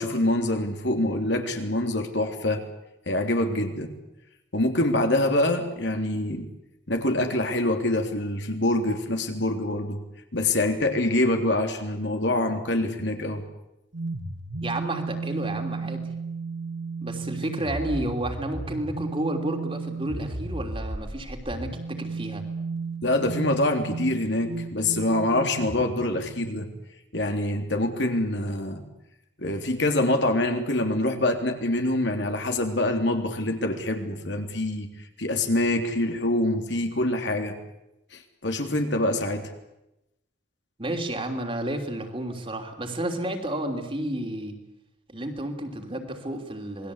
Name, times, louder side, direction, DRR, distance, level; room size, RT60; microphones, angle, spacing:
voice 1, 0.0-2.6 3.1-3.9 4.5-6.5 6.9-10.0 10.3-13.4 23.0-26.7 27.1-28.8 29.4-34.9 35.2-37.5 38.1-39.5, left 1 dB, 65° left, 4 dB, 3.4 m, -25 dB
sound 1, 13.9-26.8, right 3 dB, 75° right, 1.9 m, -34 dB
voice 2, 14.6-16.1 17.0-22.4 40.8-44.6 45.1-46.9, right 1 dB, 30° right, 4 dB, 3.2 m, -31 dB
27.5 x 20.5 x 8.3 m, 0.90 s
head